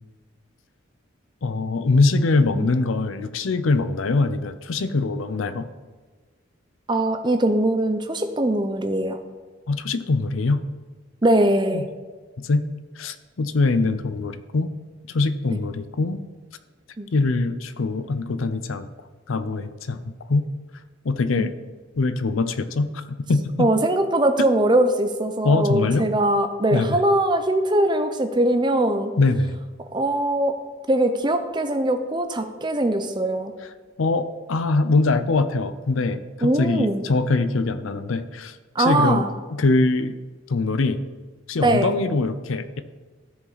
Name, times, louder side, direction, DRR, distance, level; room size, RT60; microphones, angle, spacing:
voice 1, 1.4-5.7 9.7-10.6 11.7-11.8 12.4-12.7 13.0-14.7 15.1-16.2 17.1-18.9 19.3-20.5 21.0-21.5 22.0-23.7 24.4-24.5 25.4-26.1 26.7-27.0 29.2-29.5 33.6-33.7 34.0-40.1 40.5-41.0 41.5-42.8, left 3 dB, 75° left, 11 dB, 0.6 m, -23 dB
voice 2, 6.9-9.2 11.2-11.9 17.0-17.1 21.4-21.5 23.6-29.1 29.9-30.5 30.9-33.5 36.4-37.0 38.8-39.3 41.6-42.0, right 1 dB, 20° right, 7 dB, 0.6 m, -21 dB
13.5 x 5.0 x 4.1 m, 1.4 s
head